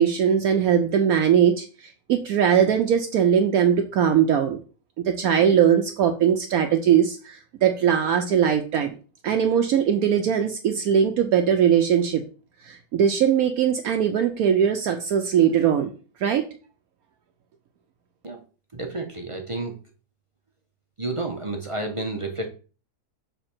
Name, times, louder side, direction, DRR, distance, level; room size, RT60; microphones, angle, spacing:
voice 1, 0.0-4.6 5.0-8.9 9.2-12.2 12.6-15.9 16.2-16.4, right 8 dB, 70° right, 5 dB, 1.0 m, -20 dB
voice 2, 18.7-19.8 21.0-22.5, right 2 dB, 35° right, 2 dB, 0.5 m, -30 dB
6.8 x 3.4 x 4.3 m, 0.36 s
omnidirectional pair, 1.7 m